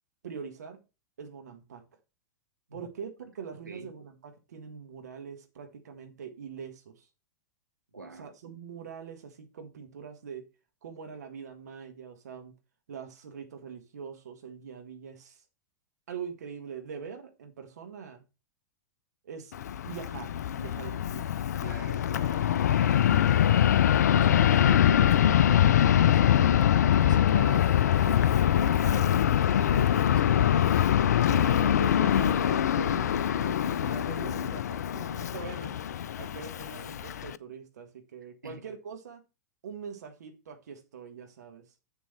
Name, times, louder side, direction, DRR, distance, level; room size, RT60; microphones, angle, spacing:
voice 1, 0.2-0.8 1.2-1.8 2.7-7.1 8.2-10.5 10.8-12.5 12.9-15.4 16.1-18.2 19.2-19.5 19.8-21.5 31.4-35.8 36.2-39.2 39.6-41.7, right 6 dB, 60° right, 1.9 m, -43 dB
voice 2, 7.9-8.3 21.6-23.8 24.1-30.9 38.4-38.6, right 2 dB, 80° right, 1.4 m, -44 dB
Fixed-wing aircraft airplane, 19.5-37.4, left 10 dB, 60° left, 0.4 m, -24 dB
7.4 x 7.0 x 4.4 m
figure-of-eight pair, 95°, 10 cm